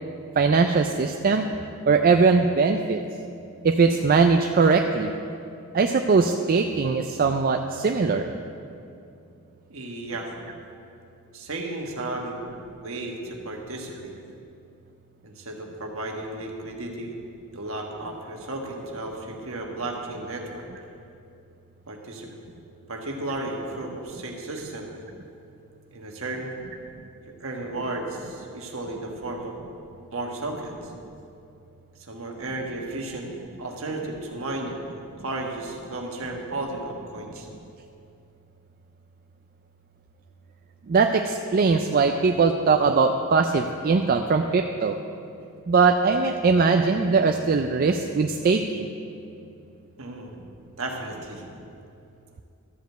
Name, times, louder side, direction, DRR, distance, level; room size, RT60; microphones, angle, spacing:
voice 1, 0.4-1.5 1.9-3.0 3.6-5.1 5.7-8.3 40.9-45.0 45.7-48.9, right 4 dB, 40° right, 5 dB, 0.4 m, -21 dB
voice 2, 9.7-10.3 11.3-12.5 12.8-14.1 15.2-17.1 17.5-20.7 21.9-22.3 22.9-24.9 25.9-26.5 27.4-29.5 30.1-30.9 32.1-37.5 50.0-50.3 50.8-51.4, right 2 dB, 65° right, 1 dB, 1.4 m, -34 dB
12.5 x 5.1 x 7.8 m, 2.6 s
head